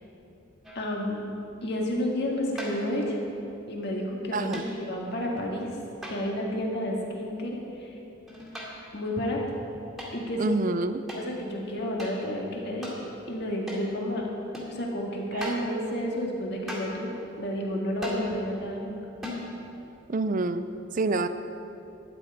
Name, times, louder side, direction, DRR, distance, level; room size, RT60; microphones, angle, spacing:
sound 1, 0.6-1.0 2.6-3.0 4.5-4.9 6.0-6.5 8.3-9.0 10.0-10.2 11.1-11.3 12.0-12.2 12.8-13.0 13.7-13.9 14.5-14.8 15.4-15.7 16.7-17.0 18.0-18.3 19.2-19.5, left 1 dB, ahead, 2.2 m, -38 dB
voice 1, 0.7-1.2 1.6-3.2 3.7-5.7 6.1-7.9 8.9-9.4 10.1-10.6 11.1-12.9 13.3-14.3 14.7-19.0, left 1 dB, 50° left, -1 dB, 1.8 m, -31 dB
voice 2, 4.3-4.7 10.4-11.0 15.3-15.6 20.1-20.7 20.9-21.3, right 3 dB, 35° right, 11 dB, 0.4 m, -27 dB
12.0 x 9.9 x 4.9 m, 2.9 s
head